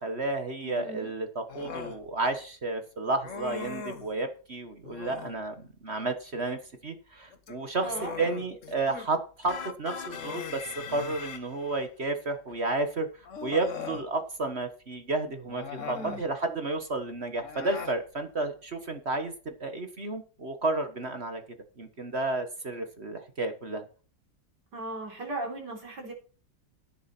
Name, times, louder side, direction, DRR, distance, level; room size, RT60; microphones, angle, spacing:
voice 1, 0.0-5.5 5.8-10.6 10.9-21.4 21.8-23.8, right 2 dB, 35° right, 7 dB, 1.4 m, -32 dB
voice 2, 0.6-1.1 7.8-8.1 15.8-16.2 24.7-26.1, right 2 dB, 60° right, 1 dB, 4.5 m, -37 dB
Human voice, 1.5-2.0 3.2-4.1 4.8-5.4 7.3-9.1 9.4-9.6 10.0-11.3 12.5-12.6 13.2-14.1 15.5-16.3 17.3-18.0, left 6 dB, 45° left, 1.4 m, -40 dB
sound 1, 9.5-11.9, left 7 dB, 85° left, 2.0 m, -41 dB
11.0 x 10.0 x 4.4 m, 0.37 s
omnidirectional pair, 2.1 m